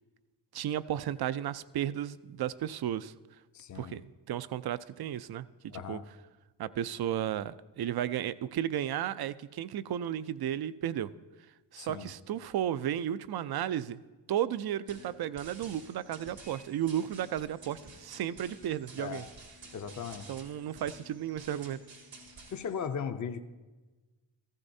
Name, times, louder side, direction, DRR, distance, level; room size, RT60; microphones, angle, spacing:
voice 1, 0.5-3.1 3.7-5.5 5.7-6.0 6.6-11.1 11.7-14.0 14.3-19.2 20.3-21.8, right 10 dB, 60° right, 16 dB, 0.5 m, -34 dB
voice 2, 3.5-4.0 5.7-6.1 11.8-12.1 19.0-19.2 19.7-20.4 22.5-23.4, left 7 dB, 40° left, 9 dB, 0.6 m, -37 dB
sound 1, 14.9-22.9, right 2 dB, 90° right, 2.3 m, -51 dB
14.5 x 13.5 x 2.7 m, 1.3 s
cardioid pair, 70°, 43 cm